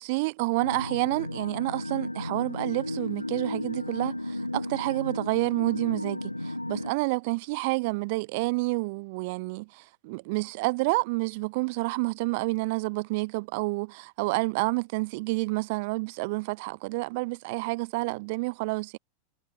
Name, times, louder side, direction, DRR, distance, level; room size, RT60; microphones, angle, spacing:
voice 1, 0.0-19.0, right 26 dB, 50° right, 1.1 m, -29 dB
sound 1, 0.6-6.9, left 1 dB, 85° left, 0.8 m, -34 dB
figure-of-eight pair, 90°, 0 cm